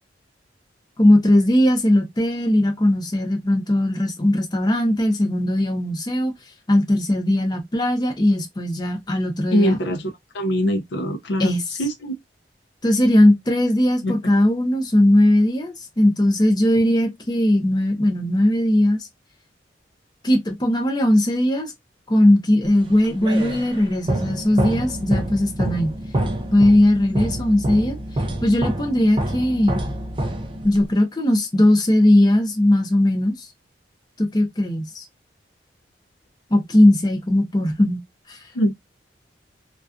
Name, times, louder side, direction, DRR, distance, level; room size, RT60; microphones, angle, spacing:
voice 1, 1.0-6.3 6.7-9.7 11.4-11.6 12.8-19.1 20.2-21.7 22.1-25.9 26.5-28.0 28.4-29.8 30.6-33.3 34.2-35.0 36.5-38.0 38.3-38.4, left 1 dB, 25° left, 0.6 m, -18 dB
voice 2, 9.5-10.1 10.3-12.1 14.0-14.1 38.5-38.7, equal, 65° left, 0.5 m, -22 dB
sound 1, 22.8-30.9, right 1 dB, 30° right, 0.4 m, -27 dB
2.3 x 2.3 x 2.4 m
head